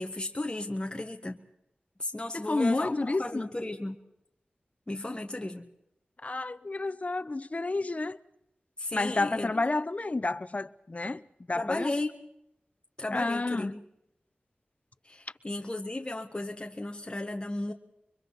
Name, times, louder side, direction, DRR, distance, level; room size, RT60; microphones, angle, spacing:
voice 1, 0.0-1.4 2.0-4.0 4.9-5.7 8.8-9.5 11.5-12.2 13.0-13.8 15.0-17.7, left 2 dB, 30° left, 1.6 m, -34 dB
voice 2, 2.3-3.5 6.2-8.2 8.9-11.2 11.5-11.9 13.1-13.8, left 2 dB, 45° left, 0.8 m, -30 dB
29.5 x 23.5 x 4.2 m
wide cardioid pair, 65°, 3 cm